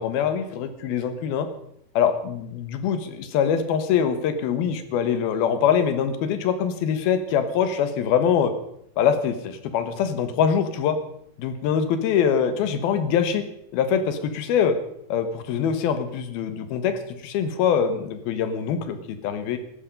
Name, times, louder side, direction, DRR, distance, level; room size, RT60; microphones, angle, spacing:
voice 1, 0.0-1.5 2.0-8.5 9.0-11.0 11.4-13.4 13.7-14.7 15.1-19.6, left 7 dB, 80° left, 10 dB, 3.1 m, -23 dB
17.0 x 12.0 x 5.2 m, 0.73 s
omnidirectional pair, 4.3 m